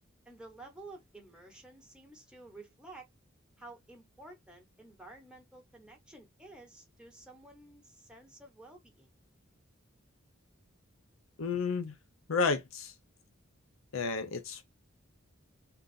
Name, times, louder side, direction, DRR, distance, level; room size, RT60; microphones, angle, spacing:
voice 1, 0.2-3.1 3.6-9.1, right 2 dB, 5° right, 1.2 m, -52 dB
voice 2, 11.4-11.9 12.3-12.9 13.9-14.6, left 4 dB, 70° left, 0.6 m, -31 dB
3.8 x 2.4 x 2.5 m
head